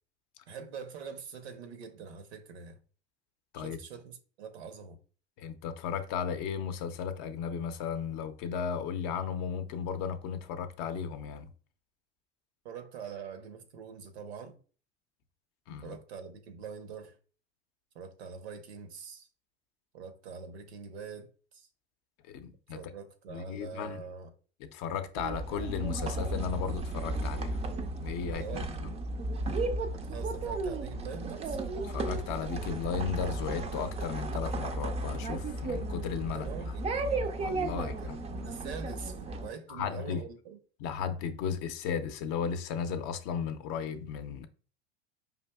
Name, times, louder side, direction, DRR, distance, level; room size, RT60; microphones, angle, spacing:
voice 1, 0.5-2.8 3.6-5.0 12.6-14.6 15.8-17.2 17.9-19.3 19.9-21.7 22.7-24.3 28.3-28.8 29.9-31.6 36.3-37.1 37.8-40.6, right 6 dB, 75° right, 0.8 m, -44 dB
voice 2, 5.4-11.5 15.7-16.0 22.3-22.8 23.3-24.1 24.6-27.6 28.0-28.9 31.8-36.6 37.4-38.2 39.7-40.2 40.8-44.5, left 7 dB, 50° left, 0.5 m, -35 dB
sound 1, 25.2-39.5, right 2 dB, 20° right, 0.4 m, -34 dB
5.0 x 2.6 x 2.2 m
hypercardioid pair, 85°, 33 cm